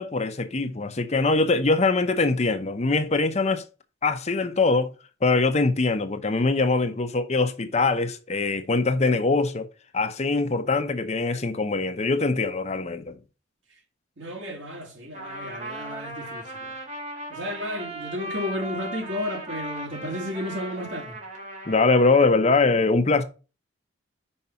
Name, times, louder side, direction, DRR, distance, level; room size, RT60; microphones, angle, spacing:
voice 1, 0.0-3.6 4.0-4.9 5.2-9.7 9.9-13.1 21.7-23.2, left 3 dB, 35° left, 0.7 m, -22 dB
voice 2, 14.2-16.8 17.3-21.2, left 1 dB, 75° right, 2.1 m, -33 dB
Trumpet, 15.1-22.4, right 1 dB, 40° right, 2.3 m, -37 dB
5.5 x 4.6 x 5.5 m
head